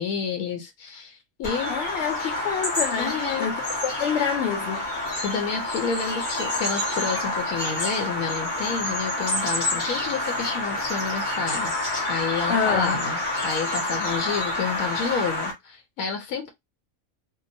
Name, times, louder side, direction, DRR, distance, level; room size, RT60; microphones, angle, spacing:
voice 1, 0.0-1.8 3.0-3.5 5.2-11.7 12.1-16.5, left 5 dB, 85° left, 1.0 m, -30 dB
Bird vocalization bird call bird song, 1.4-15.5, left 1 dB, 40° left, 1.1 m, -28 dB
voice 2, 1.7-3.5 3.8-4.8 12.5-13.0, left 7 dB, 65° left, 0.7 m, -27 dB
2.8 x 2.1 x 2.5 m
omnidirectional pair, 1.4 m